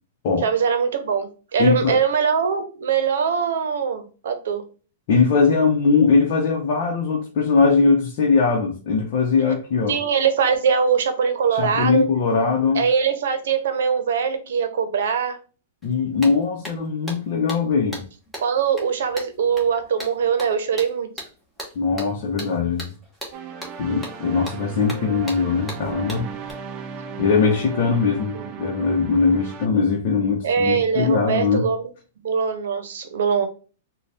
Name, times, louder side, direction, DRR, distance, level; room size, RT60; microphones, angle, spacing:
voice 1, 0.4-4.6 9.9-12.0 12.7-15.4 18.4-21.1 28.3-28.5 30.4-31.8 32.2-33.5, right 6 dB, 75° right, 0.8 m, -22 dB
voice 2, 1.6-2.0 5.1-10.0 11.6-12.8 15.8-18.0 21.7-22.9 23.8-26.3 27.2-31.7, left 4 dB, 50° left, 0.8 m, -20 dB
sound 1, 15.8-15.9 16.2-26.5, equal, ahead, 1.1 m, -38 dB
sound 2, 23.3-29.7, right 7 dB, 35° right, 0.5 m, -36 dB
4.0 x 2.3 x 3.3 m
hypercardioid pair, 150°, 0 cm